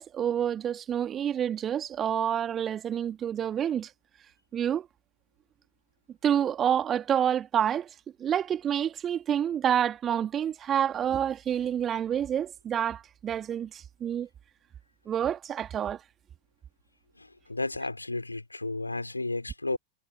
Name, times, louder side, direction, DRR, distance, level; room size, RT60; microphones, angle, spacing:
voice 1, 0.0-3.9 4.5-4.9 6.2-7.9 8.2-14.3 15.1-16.0, right 9 dB, 25° right, 2.2 m, -28 dB
voice 2, 17.2-19.8, left 2 dB, 85° left, 4.1 m, -33 dB
figure-of-eight pair, 90°, 0 cm